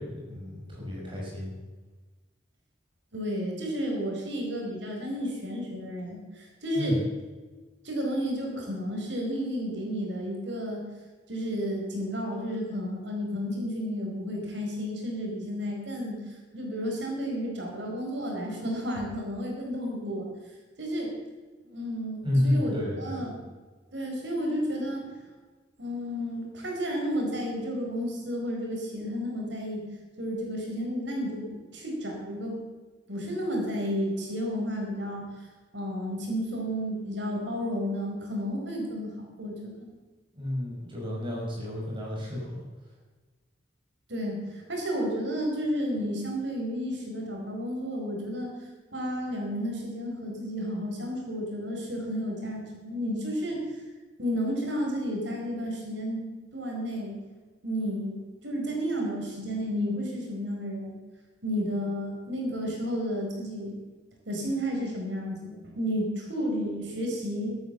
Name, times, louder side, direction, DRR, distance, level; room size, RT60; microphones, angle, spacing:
voice 1, 0.0-1.5 6.7-7.0 22.2-23.2 40.3-42.6, left 1 dB, 30° right, -3 dB, 6.2 m, -30 dB
voice 2, 3.1-7.0 7.8-10.8 11.3-20.3 20.8-21.1 21.6-23.3 23.9-25.1 25.8-29.8 30.2-32.6 33.1-35.2 35.7-39.9 44.1-48.5 48.9-53.6 54.2-56.3 56.5-57.1 57.6-60.9 61.4-63.7 64.2-67.6, equal, 80° right, 0 dB, 5.1 m, -32 dB
13.0 x 12.5 x 7.0 m, 1.3 s
head